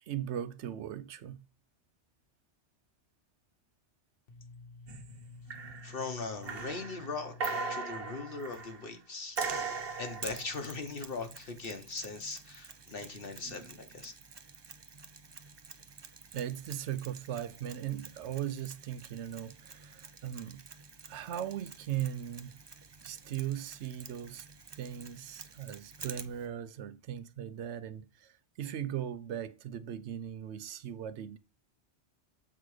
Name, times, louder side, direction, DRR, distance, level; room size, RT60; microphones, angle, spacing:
voice 1, 0.0-1.4 16.3-20.7 21.1-22.6 23.0-24.5 24.7-31.4, right 10 dB, 85° right, 0.9 m, -38 dB
voice 2, 4.3-9.5 10.0-14.1, left 4 dB, 60° left, 1.1 m, -40 dB
sound 1, 4.9-5.2 5.5-6.0 6.4-8.9 9.4-10.5 13.5-13.7, right 4 dB, 60° right, 1.1 m, -38 dB
Mechanisms, 9.4-26.5, right 4 dB, 35° right, 0.4 m, -50 dB
7.7 x 4.0 x 4.8 m
omnidirectional pair, 1.1 m